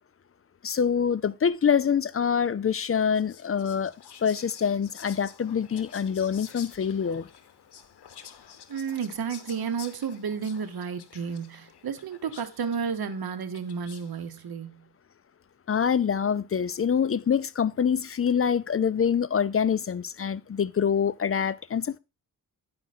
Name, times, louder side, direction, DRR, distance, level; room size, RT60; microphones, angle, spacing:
voice 1, 0.6-3.9 4.2-7.3 15.7-22.0, left 7 dB, 35° left, 0.5 m, -25 dB
Whispering, 2.8-14.3, left 8 dB, 80° left, 0.9 m, -49 dB
voice 2, 8.7-14.9, right 6 dB, 65° right, 1.0 m, -32 dB
9.6 x 4.9 x 4.1 m
cardioid pair, 80°, 39 cm